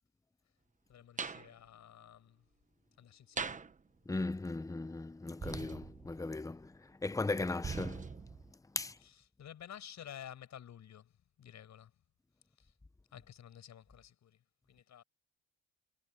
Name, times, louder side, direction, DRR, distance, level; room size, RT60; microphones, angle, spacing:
voice 1, 0.9-2.5 3.0-3.7 9.0-12.0 12.5-12.8 13.1-15.0, left 10 dB, 65° left, 7.0 m, -52 dB
sound 1, 1.2-1.5 3.4-3.7 5.4-6.4 7.6-8.5, right 5 dB, 25° right, 1.1 m, -41 dB
voice 2, 4.1-8.3 8.7-9.0, left 3 dB, 10° left, 0.8 m, -38 dB
cardioid pair, 90°, 30 cm